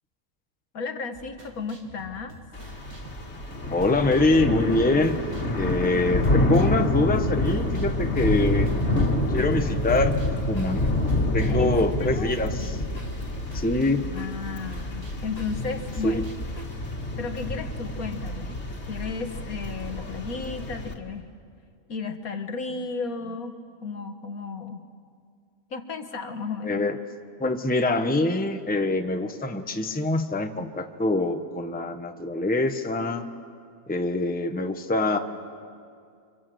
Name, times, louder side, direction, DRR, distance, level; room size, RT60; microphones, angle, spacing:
voice 1, 0.7-2.4 11.5-12.8 14.0-16.3 17.2-21.3 21.9-23.6 23.8-24.9 25.7-26.8, left 4 dB, 80° left, 7 dB, 2.0 m, -34 dB
sound 1, 1.1-17.0, right 2 dB, 75° right, 2.9 m, -47 dB
Thunder / Rain, 2.5-20.9, left 1 dB, 50° left, 2.4 m, -27 dB
voice 2, 3.7-5.2 5.5-8.7 9.2-10.2 10.5-10.9 11.3-12.8 13.5-14.1 16.0-16.2 26.6-27.0 27.4-33.3 33.9-35.2, left 2 dB, 5° left, 6 dB, 1.0 m, -24 dB
sound 2, 7.6-17.1, left 1 dB, 25° left, 2.5 m, -42 dB
29.0 x 26.0 x 7.8 m, 2.3 s
omnidirectional pair, 1.5 m